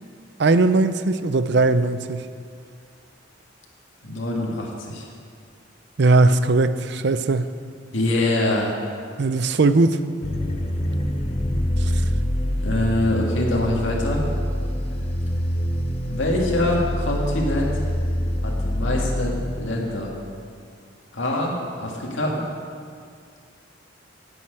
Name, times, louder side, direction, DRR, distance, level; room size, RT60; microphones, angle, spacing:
voice 1, 0.4-2.3 6.0-7.5 9.2-10.0 11.8-12.0, right 3 dB, 60° right, 12 dB, 0.5 m, -19 dB
voice 2, 4.0-5.1 7.9-8.8 12.6-14.2 16.1-17.8 18.4-20.1 21.1-22.4, left 1 dB, 85° left, -2 dB, 2.0 m, -24 dB
sound 1, 10.2-19.9, equal, 30° left, 0.7 m, -25 dB
10.5 x 7.8 x 8.8 m, 2.2 s
head